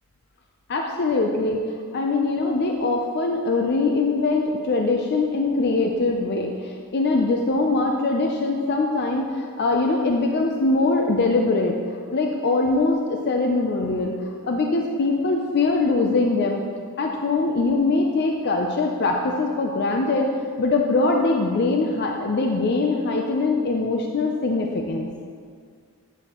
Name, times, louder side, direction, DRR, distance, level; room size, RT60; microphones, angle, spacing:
voice 1, 0.7-11.8 12.1-14.2 14.4-16.6 17.0-20.3 20.6-25.1, left 3 dB, 50° left, 2 dB, 0.5 m, -22 dB
9.1 x 7.7 x 3.0 m, 2.1 s
head